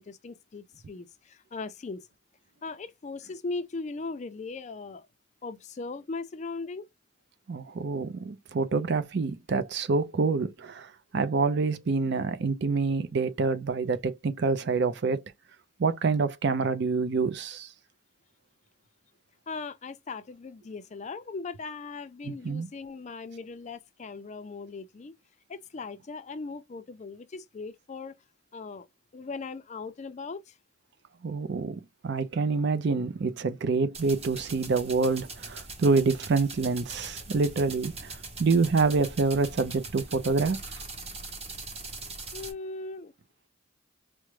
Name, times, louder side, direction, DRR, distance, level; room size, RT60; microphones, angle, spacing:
voice 1, 0.0-2.1 2.6-5.1 5.4-6.9 19.5-25.1 25.5-28.2 28.5-28.9 29.1-30.6 42.3-43.1, left 4 dB, 35° left, 0.4 m, -39 dB
voice 2, 7.5-15.2 15.8-17.7 22.3-22.7 31.2-40.6, right 4 dB, 55° right, 0.5 m, -27 dB
sound 1, 33.9-42.5, right 3 dB, 30° right, 0.9 m, -41 dB
4.7 x 2.1 x 3.1 m
head